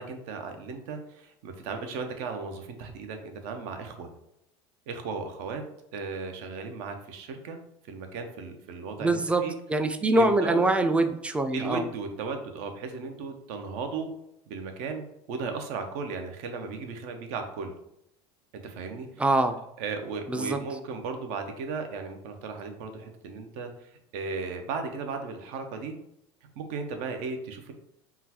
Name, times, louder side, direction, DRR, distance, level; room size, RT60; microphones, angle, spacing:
voice 1, 0.0-4.1 4.9-5.6 5.9-7.6 7.9-9.5 10.1-10.6 11.5-14.1 14.5-17.7 18.6-19.1 19.8-26.0 26.6-27.7, right 4 dB, 65° right, 6 dB, 0.6 m, -36 dB
voice 2, 9.0-9.4 9.7-11.9 19.2-19.6 20.3-20.6, right 2 dB, 10° right, 8 dB, 0.3 m, -24 dB
3.7 x 2.3 x 2.8 m, 0.80 s
supercardioid pair, 95°, 13 cm